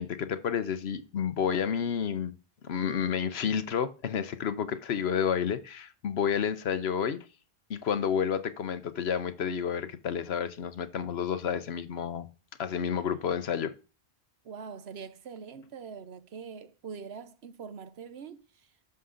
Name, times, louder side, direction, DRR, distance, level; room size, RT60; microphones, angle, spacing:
voice 1, 0.0-2.3 2.6-7.2 7.7-12.3 12.6-13.7, left 7 dB, 75° left, 1.1 m, -30 dB
voice 2, 14.4-18.7, right 6 dB, 75° right, 1.0 m, -43 dB
11.0 x 6.8 x 3.8 m
omnidirectional pair, 1.1 m